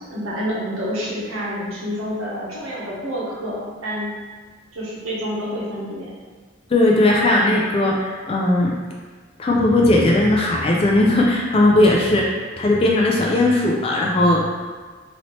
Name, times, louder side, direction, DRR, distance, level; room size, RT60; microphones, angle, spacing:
voice 1, 0.0-4.1 4.7-6.1, equal, 85° right, -6 dB, 1.0 m, -28 dB
voice 2, 6.7-8.7 9.4-14.5, left 1 dB, 30° left, -2 dB, 0.3 m, -17 dB
3.0 x 2.7 x 3.0 m, 1.4 s
head